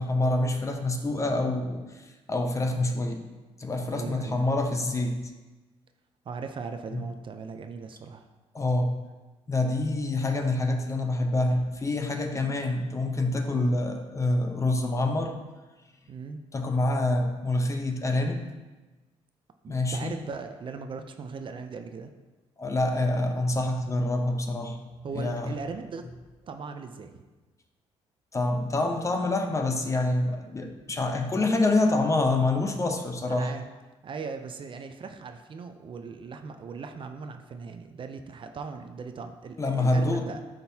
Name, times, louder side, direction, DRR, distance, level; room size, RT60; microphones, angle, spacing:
voice 1, 0.0-3.2 3.6-5.2 6.9-7.0 8.5-8.9 9.5-15.4 16.5-18.4 19.7-20.1 22.6-24.8 25.1-25.5 28.3-33.5 39.6-40.2, left 2 dB, 25° left, 5 dB, 0.8 m, -26 dB
voice 2, 3.8-4.5 6.3-8.3 13.5-13.8 16.1-16.4 19.6-22.1 25.0-26.1 26.4-27.2 33.3-33.6 34.0-40.4, right 5 dB, 45° right, 7 dB, 0.5 m, -38 dB
10.0 x 3.8 x 2.8 m, 1.2 s
cardioid pair, 90°, 12 cm